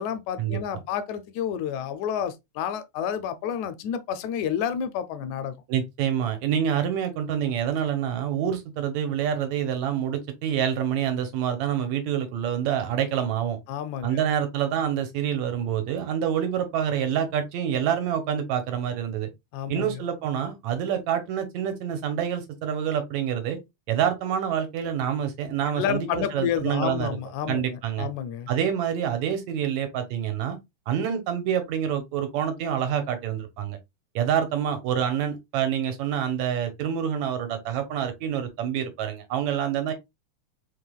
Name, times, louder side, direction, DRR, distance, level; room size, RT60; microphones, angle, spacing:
voice 1, 0.0-5.6 13.7-14.2 19.5-20.0 25.8-28.5, left 9 dB, 80° left, 1.9 m, -30 dB
voice 2, 5.7-13.6 14.0-19.3 19.7-23.6 23.9-27.1 27.5-28.1 28.5-30.6 30.9-33.8 34.2-39.9, right 9 dB, 75° right, 2.0 m, -27 dB
5.5 x 3.2 x 2.2 m
omnidirectional pair, 3.4 m